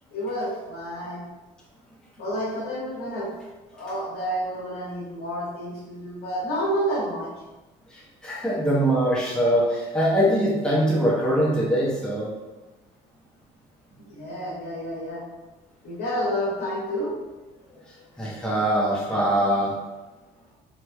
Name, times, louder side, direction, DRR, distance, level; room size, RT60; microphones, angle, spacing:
voice 1, 0.1-1.2 2.2-3.3 3.7-7.3 14.1-15.2 15.8-18.0, equal, 75° left, -6 dB, 1.5 m, -30 dB
voice 2, 8.2-12.3 18.2-19.7, equal, 5° left, -6 dB, 0.8 m, -22 dB
3.1 x 3.0 x 2.2 m, 1.1 s
cardioid pair, 110°, 17 cm